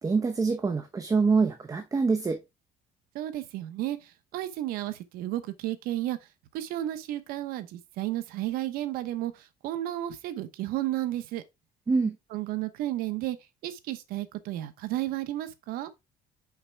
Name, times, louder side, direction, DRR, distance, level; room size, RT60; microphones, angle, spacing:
voice 1, 0.0-2.4 11.9-12.2, right 4 dB, 25° right, 0.9 m, -25 dB
voice 2, 3.1-4.0 4.3-6.2 6.5-9.3 9.6-11.4 12.3-13.4 13.6-15.9, right 14 dB, 80° right, 1.0 m, -32 dB
5.8 x 5.5 x 3.4 m
cardioid pair, 110°, 15 cm